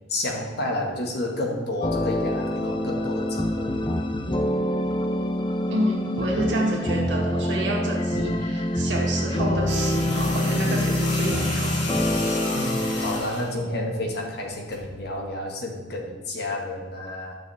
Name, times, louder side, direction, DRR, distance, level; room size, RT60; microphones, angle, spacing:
voice 1, 0.1-3.8 12.5-17.4, left 1 dB, 65° left, 0 dB, 1.7 m, -30 dB
sound 1, 1.8-13.2, left 1 dB, 30° left, 0.6 m, -25 dB
voice 2, 5.7-12.0, right 1 dB, 80° right, 0 dB, 1.8 m, -28 dB
sound 2, 9.7-13.5 14.7-14.9, left 1 dB, 80° left, 2.3 m, -33 dB
12.0 x 6.4 x 3.5 m, 1.4 s
head